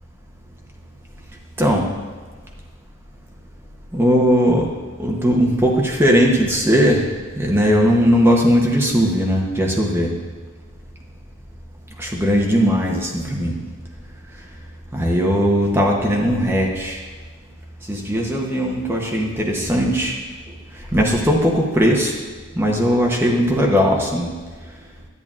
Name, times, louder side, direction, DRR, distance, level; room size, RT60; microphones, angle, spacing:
voice 1, 3.9-4.7 5.0-7.1 7.4-10.1 12.0-13.6 14.9-17.0 17.9-20.2 20.9-22.1 22.6-24.3, equal, 10° right, -1 dB, 0.8 m, -18 dB
11.0 x 8.6 x 2.4 m, 1.4 s
head